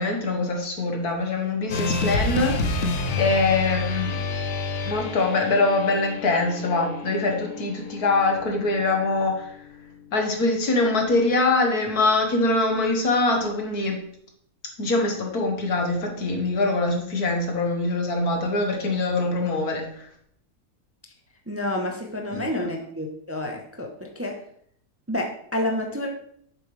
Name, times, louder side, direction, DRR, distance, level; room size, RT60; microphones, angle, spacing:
voice 1, 0.0-2.9 3.2-4.2 4.8-9.6 10.1-14.0 14.8-20.1 22.3-22.7, left 2 dB, 80° left, 2 dB, 2.0 m, -23 dB
sound 1, 1.7-10.0, left 3 dB, 55° left, 1.1 m, -29 dB
voice 2, 21.5-24.3 25.1-26.1, left 1 dB, 15° right, 2 dB, 0.7 m, -29 dB
8.5 x 6.9 x 3.3 m, 0.67 s
omnidirectional pair, 1.6 m